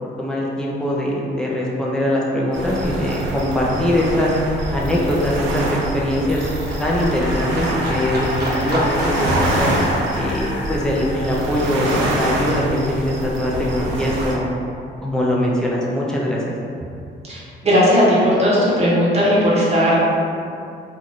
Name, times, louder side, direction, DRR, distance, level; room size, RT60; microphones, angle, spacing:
voice 1, 0.0-4.3 4.7-6.5 6.8-9.7 10.1-14.5 15.0-16.5, left 1 dB, 5° left, -5 dB, 0.5 m, -22 dB
Livestock farm animals working animals, 2.4-13.1 13.4-14.4 14.7-14.8, right 1 dB, 55° right, 0.8 m, -32 dB
sound 1, 2.5-14.3, right 1 dB, 80° right, 0.5 m, -25 dB
sound 2, 5.9-12.1, left 2 dB, 60° left, 0.5 m, -32 dB
voice 2, 17.3-20.0, equal, 30° right, -7 dB, 1.0 m, -16 dB
2.6 x 2.5 x 3.0 m, 2.5 s
cardioid pair, 90°, 20 cm